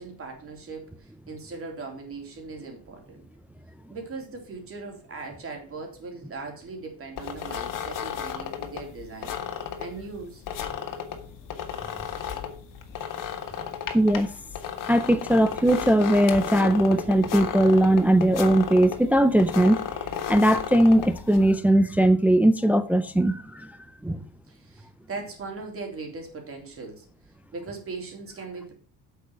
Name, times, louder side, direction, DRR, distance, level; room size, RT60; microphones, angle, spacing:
voice 1, 0.0-3.2 3.9-9.4 9.8-10.4 24.5-27.1 27.5-28.7, right 4 dB, 35° right, 3.6 m, -39 dB
sound 1, 7.2-21.5, left 8 dB, 50° left, 1.7 m, -34 dB
voice 2, 13.9-14.3 14.9-19.8 20.3-23.7 24.0-24.2, right 1 dB, 5° right, 0.4 m, -20 dB
8.5 x 6.9 x 6.1 m
cardioid pair, 150°, 41 cm